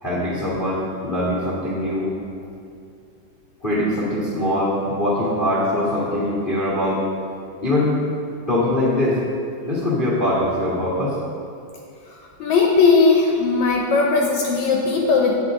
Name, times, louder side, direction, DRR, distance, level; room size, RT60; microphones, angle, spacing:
voice 1, 0.0-2.1 3.6-7.1 7.6-8.0 8.5-9.2 9.6-11.2, left 1 dB, 40° left, -7 dB, 0.7 m, -22 dB
voice 2, 12.4-15.4, left 4 dB, 70° left, 0 dB, 1.8 m, -17 dB
11.0 x 9.3 x 3.7 m, 2.5 s
omnidirectional pair, 4.1 m